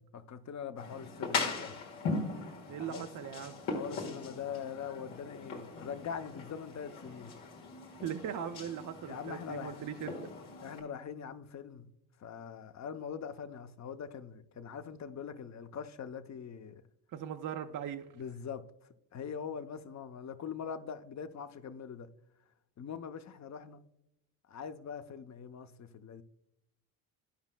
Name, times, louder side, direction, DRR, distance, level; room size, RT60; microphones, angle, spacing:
voice 1, 0.0-1.7 2.8-3.1 3.7-7.3 9.1-9.7 10.6-11.9 12.2-16.8 18.1-18.6 19.1-22.1 22.8-23.8 24.5-26.2, left 7 dB, 35° left, 0.7 m, -42 dB
sound 1, 0.8-10.8, left 3 dB, 90° left, 1.6 m, -40 dB
voice 2, 2.7-3.6 8.0-10.3 17.1-18.1, right 8 dB, 45° right, 0.6 m, -39 dB
13.0 x 5.1 x 2.2 m
supercardioid pair, 65°, 46 cm